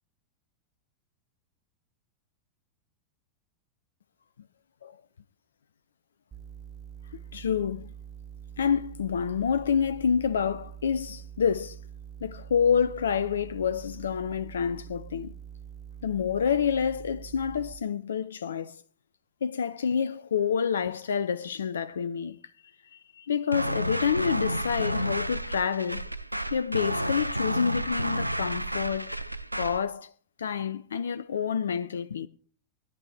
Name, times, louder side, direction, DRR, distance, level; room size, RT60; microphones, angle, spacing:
sound 1, 6.3-17.7, right 8 dB, 20° right, 1.1 m, -45 dB
voice 1, 7.3-7.9 8.6-11.8 12.2-15.3 16.0-18.8 19.4-22.4 22.9-26.0 26.5-29.2 29.5-30.1 30.4-32.3, left 7 dB, 65° left, 0.5 m, -28 dB
sound 2, 23.5-29.9, right 1 dB, 90° right, 0.4 m, -31 dB
18.5 x 10.5 x 3.3 m
figure-of-eight pair, 90°, 0 cm